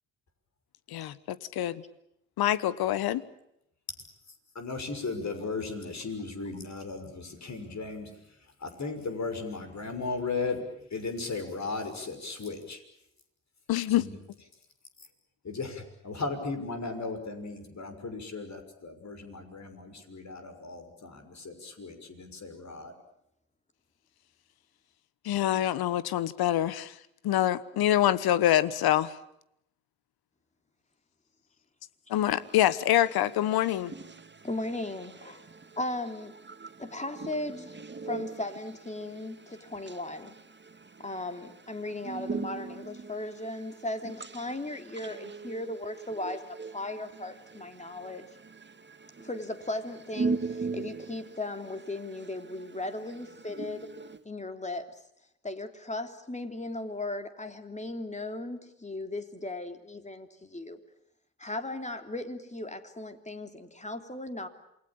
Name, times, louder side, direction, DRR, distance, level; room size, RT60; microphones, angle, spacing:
voice 1, 0.9-1.8 2.4-3.2 13.7-14.0 25.2-27.0 27.2-29.1 32.1-33.9, left 12 dB, 65° left, 18 dB, 1.3 m, -25 dB
voice 2, 4.5-8.1 8.6-12.8 14.0-14.2 15.4-22.9, left 3 dB, 45° left, 6 dB, 6.2 m, -36 dB
voice 3, 32.1-49.8 50.1-54.2, right 4 dB, 25° right, 10 dB, 2.3 m, -41 dB
voice 4, 34.4-35.5 35.8-36.3 36.8-37.7 38.1-40.3 41.0-46.4 46.7-48.3 49.2-50.3 50.8-53.8 54.2-54.9 55.4-60.8 61.4-64.5, left 2 dB, 15° left, 7 dB, 3.3 m, -37 dB
28.0 x 21.5 x 8.8 m, 0.78 s
hypercardioid pair, 45°, 39 cm